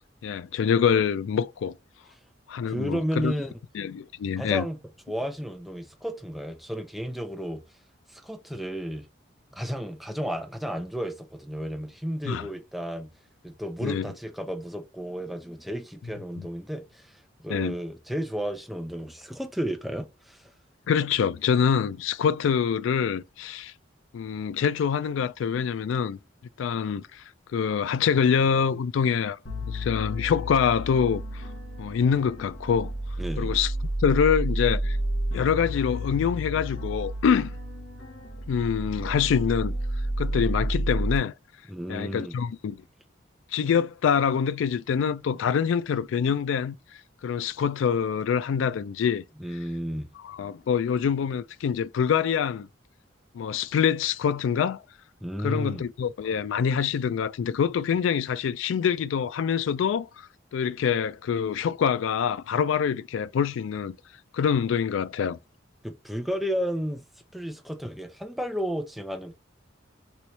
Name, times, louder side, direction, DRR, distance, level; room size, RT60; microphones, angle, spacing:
voice 1, 0.2-1.7 2.5-3.3 3.7-4.7 12.3-12.5 13.8-14.1 17.5-17.8 20.9-23.7 24.1-26.2 26.6-27.2 27.5-31.5 31.8-32.9 33.4-33.7 34.0-35.0 35.3-37.5 38.5-39.7 40.2-41.3 41.9-42.8 43.5-46.8 47.2-49.2 50.2-52.7 53.3-54.8 55.4-64.0 64.3-65.4, left 7 dB, 80° left, 0.3 m, -25 dB
voice 2, 2.6-3.6 4.4-4.8 5.1-7.6 8.1-9.1 9.5-13.1 13.4-20.5 33.2-33.5 41.7-42.4 49.4-50.1 55.2-55.8 65.8-67.0 67.3-69.3, equal, ahead, 0.5 m, -32 dB
sound 1, 29.5-41.2, equal, 60° left, 1.0 m, -31 dB
3.1 x 3.0 x 2.7 m
head